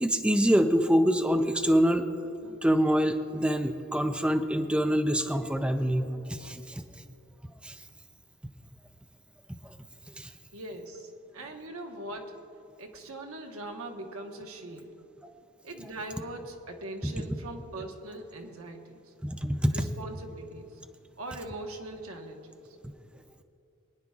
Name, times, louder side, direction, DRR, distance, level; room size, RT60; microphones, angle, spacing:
voice 1, 0.0-2.1 2.4-6.8 7.6-7.7 10.2-10.3 19.4-19.7, equal, 5° right, 6 dB, 0.5 m, -25 dB
voice 2, 10.5-12.5 12.8-15.0 15.6-19.1 19.7-20.8 21.2-22.8, right 1 dB, 85° right, 3 dB, 1.2 m, -41 dB
23.5 x 10.0 x 2.4 m, 2.8 s
head